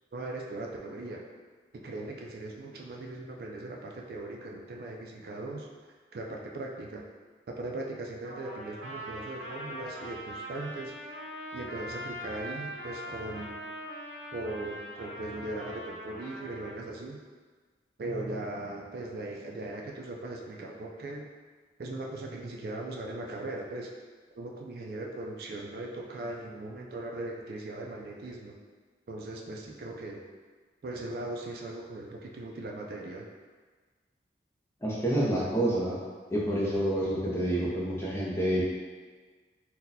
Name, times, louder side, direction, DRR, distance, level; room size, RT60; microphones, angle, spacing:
voice 1, 0.1-1.2 1.7-5.7 6.1-7.0 7.5-10.9 11.5-13.6 14.3-17.2 18.0-21.3 21.8-23.9 24.4-28.6 29.1-30.2 30.8-33.2, right 2 dB, 55° right, 0 dB, 0.3 m, -39 dB
Trumpet, 8.2-16.8, equal, 85° right, 0.7 m, -42 dB
voice 2, 34.8-36.0 36.3-38.6, right 1 dB, 15° left, -6 dB, 0.5 m, -28 dB
2.7 x 2.2 x 3.9 m, 1.5 s
head